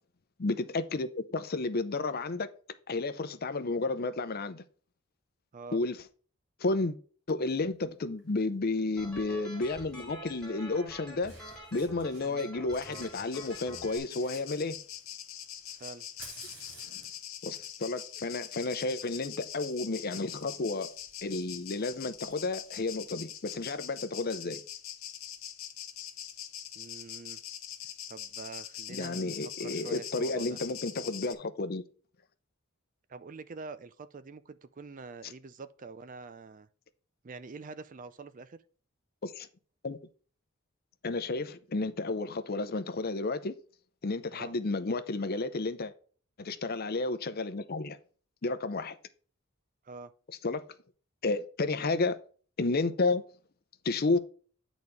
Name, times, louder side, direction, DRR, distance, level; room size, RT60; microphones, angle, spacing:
voice 1, 0.4-2.5 2.9-4.6 5.7-6.0 6.6-7.0 7.3-11.3 11.7-14.8 16.9-17.0 17.4-20.9 21.2-24.6 28.9-31.8 39.2-39.5 39.8-40.0 41.0-43.5 44.0-45.9 46.4-48.0 48.4-48.9 50.4-50.6 51.2-52.2 52.6-53.2 53.8-54.2, left 3 dB, 45° left, 0.6 m, -32 dB
Fire, 8.2-8.4 9.8-9.9 10.9-11.0 11.2-12.4 12.7-15.1 15.7-23.3, right 2 dB, 60° right, 3.5 m, -55 dB
sound 1, 9.0-14.0, equal, 5° left, 2.4 m, -47 dB
sound 2, 12.8-31.3, left 10 dB, 75° left, 1.0 m, -43 dB
voice 2, 26.7-27.4 28.1-30.6 33.1-36.7 37.2-38.6 44.3-44.5 49.8-50.1, right 4 dB, 40° right, 0.5 m, -45 dB
8.8 x 4.1 x 4.7 m
head